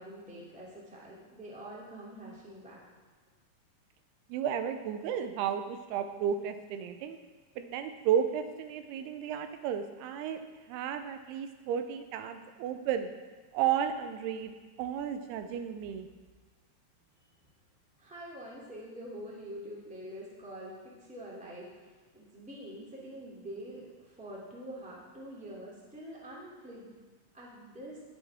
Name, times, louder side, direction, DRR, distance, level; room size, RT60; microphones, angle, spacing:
voice 1, 0.0-2.8 18.0-26.9 27.3-28.0, right 1 dB, 5° right, -5 dB, 1.8 m, -45 dB
voice 2, 4.3-7.2 7.6-10.4 10.7-13.1 13.5-16.1, right 8 dB, 85° right, 8 dB, 2.7 m, -33 dB
18.5 x 7.3 x 3.5 m, 1.3 s
omnidirectional pair, 4.6 m